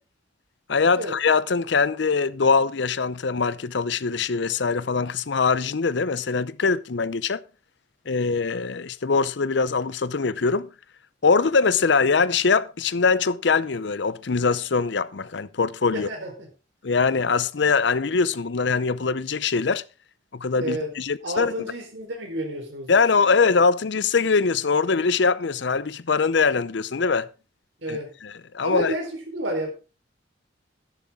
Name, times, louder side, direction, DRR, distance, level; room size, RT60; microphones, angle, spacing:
voice 1, 0.7-7.4 8.1-10.7 11.2-16.1 16.8-19.8 20.3-21.5 22.9-27.3 27.9-28.9, left 4 dB, 65° left, 0.6 m, -22 dB
voice 2, 15.9-16.5 20.6-20.9 21.2-23.2 27.8-28.1 28.6-29.7, right 1 dB, 75° right, 4.2 m, -30 dB
11.5 x 11.0 x 3.7 m
head